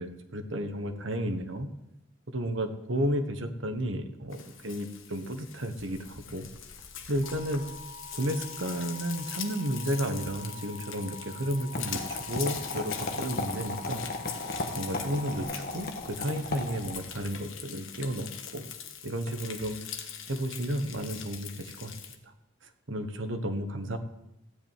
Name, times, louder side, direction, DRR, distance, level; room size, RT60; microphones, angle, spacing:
voice 1, 0.0-1.7 2.3-6.5 7.1-7.8 8.1-14.0 14.7-18.7 19.0-19.8 20.3-21.9 22.9-24.0, equal, 65° right, 7 dB, 1.2 m, -32 dB
Frying (food), 4.3-22.2, left 8 dB, 70° left, 1.3 m, -42 dB
Alarm, 7.2-15.4, left 1 dB, 20° right, 1.0 m, -47 dB
sound 1, 11.7-17.2, left 2 dB, 45° left, 1.4 m, -36 dB
14.5 x 5.5 x 9.0 m, 0.86 s
head